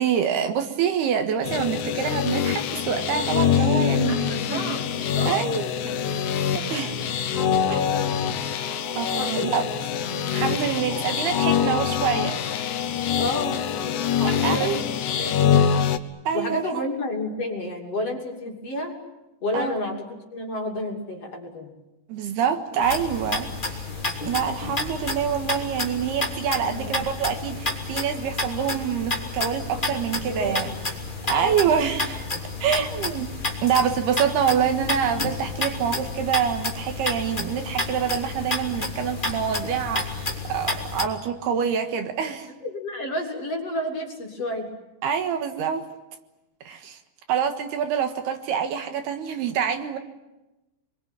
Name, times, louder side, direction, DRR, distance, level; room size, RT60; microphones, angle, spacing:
voice 1, 0.0-4.8 5.2-5.7 6.2-7.0 7.7-7.9 9.0-9.7 10.3-12.7 14.2-14.8 16.2-16.6 19.5-19.8 22.1-23.9 24.2-30.7 31.2-32.3 32.6-33.3 33.6-42.5 45.0-45.8 46.6-47.0 47.3-50.0, right 8 dB, 70° right, 7 dB, 3.4 m, -26 dB
sound 1, 1.4-16.0, left 8 dB, 70° left, 2.0 m, -24 dB
Speech synthesizer, 2.8-6.2, right 4 dB, 45° right, 3.0 m, -45 dB
voice 2, 4.0-5.6 6.6-8.2 9.2-9.6 13.2-15.6 16.3-18.9 19.4-20.0 20.3-21.7 26.6-27.0 30.3-30.7 31.3-31.7 32.6-32.7 42.6-44.7, left 1 dB, 40° left, 1 dB, 3.4 m, -31 dB
sound 2, 22.8-41.1, left 2 dB, 15° left, 2.1 m, -30 dB
28.5 x 22.5 x 9.0 m, 1.0 s
omnidirectional pair, 5.1 m